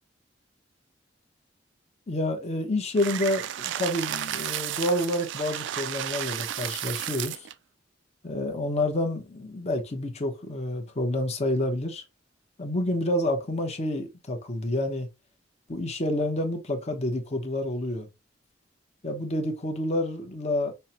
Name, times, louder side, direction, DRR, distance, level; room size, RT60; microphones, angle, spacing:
voice 1, 2.1-7.5 8.2-12.0 12.6-15.1 15.7-18.1 19.0-20.7, left 1 dB, 35° left, 0.9 m, -28 dB
sound 1, 3.0-7.5, right 11 dB, 70° right, 0.3 m, -33 dB
5.4 x 2.2 x 2.8 m
head